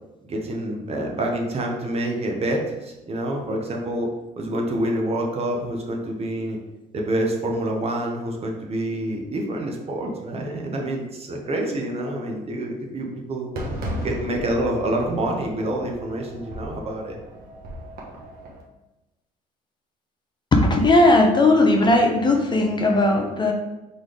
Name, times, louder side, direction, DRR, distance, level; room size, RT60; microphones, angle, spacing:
voice 1, 0.2-4.1 4.4-6.6 6.9-13.5 14.0-17.2, right 1 dB, 35° right, 1 dB, 0.8 m, -27 dB
Fireworks, 13.6-18.6, equal, 60° right, 1.1 m, -35 dB
voice 2, 20.5-23.5, left 2 dB, 25° left, 2 dB, 0.6 m, -17 dB
4.0 x 3.3 x 3.7 m, 1.0 s
cardioid pair, 110°, 17 cm